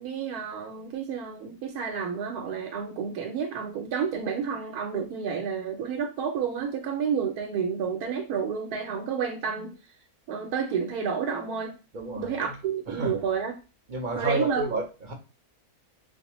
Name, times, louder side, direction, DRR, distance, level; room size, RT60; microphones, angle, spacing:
voice 1, 0.0-9.7 10.3-11.7 12.2-13.5 14.2-14.6, right 6 dB, 90° right, 1.1 m, -30 dB
voice 2, 11.9-12.3 12.9-13.2 13.9-15.1, right 2 dB, 45° right, 0.7 m, -30 dB
4.9 x 2.1 x 3.0 m
omnidirectional pair, 1.6 m